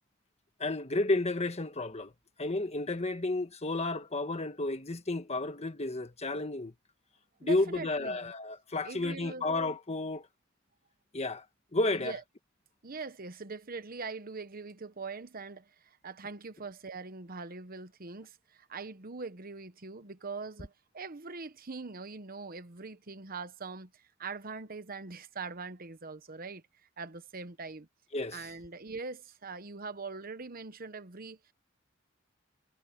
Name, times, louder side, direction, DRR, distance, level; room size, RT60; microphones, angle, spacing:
voice 1, 0.6-2.1 2.4-6.7 7.4-10.3 11.1-11.4 11.7-12.2 28.1-28.5, left 2 dB, 35° left, 1.4 m, -32 dB
voice 2, 7.4-8.3 8.8-9.4 11.9-12.2 12.8-26.6 27.0-27.9 28.3-31.4, right 4 dB, 50° right, 1.1 m, -42 dB
head